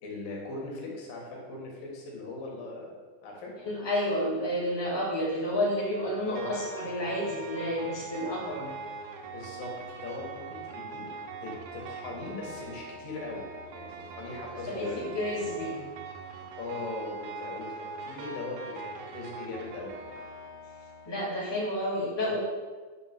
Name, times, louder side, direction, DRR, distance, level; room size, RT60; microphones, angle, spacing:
voice 1, 0.0-2.9 3.2-3.6 6.2-6.5 9.2-11.1 11.4-13.4 13.7-15.2 16.5-19.9, left 3 dB, 85° left, -2 dB, 3.4 m, -39 dB
voice 2, 3.6-8.7 14.7-14.9 15.1-15.8 21.1-22.4, equal, 10° left, -7 dB, 2.3 m, -30 dB
sound 1, 6.3-21.1, right 3 dB, 70° right, 2.0 m, -42 dB
9.2 x 4.4 x 5.9 m, 1.4 s
omnidirectional pair, 3.8 m